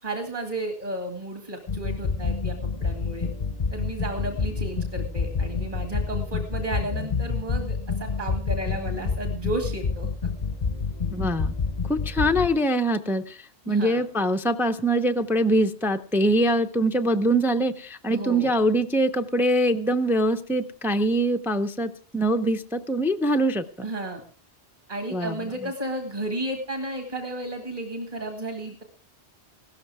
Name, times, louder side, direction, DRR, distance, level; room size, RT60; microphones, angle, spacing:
voice 1, 0.0-3.3 3.7-10.3 13.7-14.0 18.1-18.5 23.8-24.2 24.9-28.8, right 1 dB, 35° right, 4 dB, 2.2 m, -33 dB
sound 1, 1.7-12.5, left 5 dB, 40° left, 0.8 m, -28 dB
voice 2, 11.1-11.5 11.9-23.6 25.1-25.4, right 1 dB, 5° right, 7 dB, 0.5 m, -23 dB
16.5 x 13.5 x 3.5 m, 0.42 s
omnidirectional pair, 1.2 m